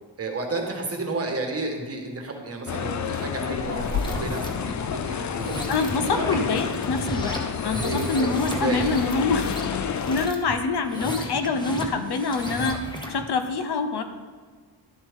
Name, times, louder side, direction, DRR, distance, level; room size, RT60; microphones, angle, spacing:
voice 1, 0.2-6.3 7.8-8.8, right 3 dB, 35° right, 2 dB, 1.5 m, -32 dB
sound 1, 2.7-10.3, left 7 dB, 45° left, 0.5 m, -30 dB
sound 2, 3.8-4.5 5.2-13.2, equal, 10° left, 1.1 m, -34 dB
voice 2, 5.7-9.4 10.1-12.8 13.1-14.0, left 4 dB, 65° left, 8 dB, 1.0 m, -25 dB
12.0 x 7.1 x 3.6 m, 1.5 s
wide cardioid pair, 150°, 43 cm